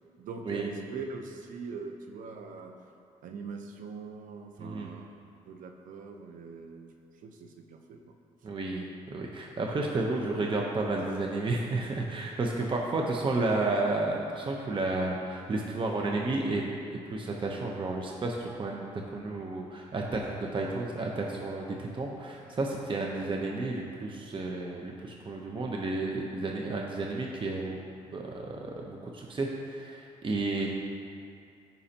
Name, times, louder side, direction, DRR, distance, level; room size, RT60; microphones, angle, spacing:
voice 1, 0.2-2.7 3.2-8.1 30.5-30.7, right 4 dB, 75° right, 4 dB, 0.8 m, -42 dB
voice 2, 4.6-4.9 8.4-16.6 16.9-27.8 28.1-30.7, right 2 dB, 35° right, 0 dB, 0.9 m, -32 dB
14.5 x 5.6 x 2.9 m, 2.4 s
cardioid pair, 75°, 14 cm